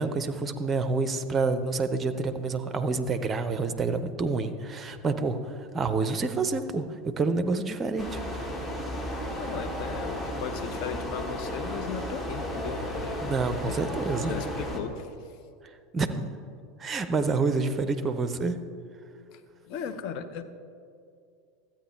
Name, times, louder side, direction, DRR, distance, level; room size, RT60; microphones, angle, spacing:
voice 1, 0.0-8.5 13.2-14.3 15.9-16.4 16.8-18.6, right 3 dB, 25° right, 10 dB, 0.6 m, -28 dB
sound 1, 8.0-14.8, equal, 20° left, 1.3 m, -34 dB
voice 2, 9.4-13.3 13.7-13.9 14.2-15.1 19.3-19.4 19.7-20.4, left 7 dB, 50° left, 9 dB, 0.6 m, -37 dB
13.0 x 8.8 x 3.2 m, 2.4 s
figure-of-eight pair, 80°, 0 cm